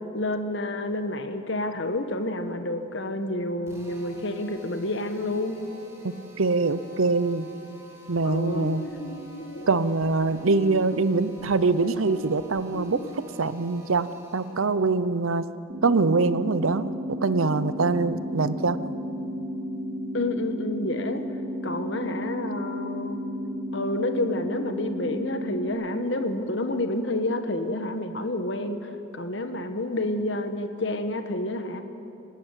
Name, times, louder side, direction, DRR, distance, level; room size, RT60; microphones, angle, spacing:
voice 1, 0.1-5.6 8.2-8.7 20.1-21.2 21.6-23.2 23.7-31.8, left 1 dB, 60° left, 8 dB, 1.5 m, -29 dB
Drill, 3.6-14.7, equal, 15° right, 3.3 m, -49 dB
voice 2, 6.0-7.5 8.1-8.8 9.7-15.4 15.8-18.8, right 3 dB, 80° right, 14 dB, 0.8 m, -24 dB
sound 1, 8.5-13.2, left 1 dB, 75° left, 1.6 m, -39 dB
sound 2, 15.7-25.7, equal, 50° right, 2.9 m, -33 dB
27.0 x 12.5 x 9.1 m, 2.8 s
head